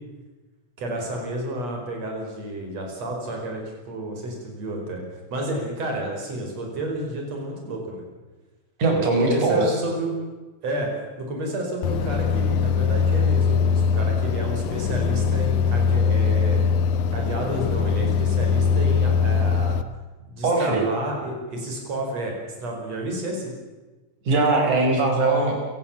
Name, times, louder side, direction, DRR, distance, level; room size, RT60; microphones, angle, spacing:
voice 1, 0.8-5.0 5.3-8.0 9.0-10.2 10.6-10.9 11.2-16.7 17.1-19.8 20.3-23.5, right 1 dB, 60° right, 1 dB, 6.2 m, -30 dB
voice 2, 8.8-9.6 20.4-20.8 24.3-25.5, right 3 dB, 85° right, 2 dB, 6.6 m, -20 dB
sound 1, 11.8-19.8, left 6 dB, 85° left, 2.4 m, -21 dB
27.5 x 17.0 x 7.4 m, 1.2 s
omnidirectional pair, 3.4 m